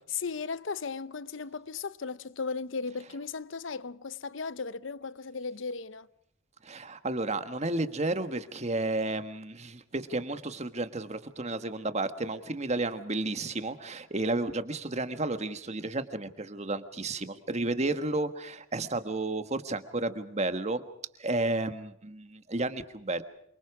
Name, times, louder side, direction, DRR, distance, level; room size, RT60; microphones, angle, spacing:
voice 1, 0.1-6.1, left 5 dB, 65° left, 0.8 m, -36 dB
voice 2, 6.6-20.8 21.2-23.2, right 2 dB, 35° right, 1.5 m, -32 dB
28.0 x 25.0 x 4.9 m
head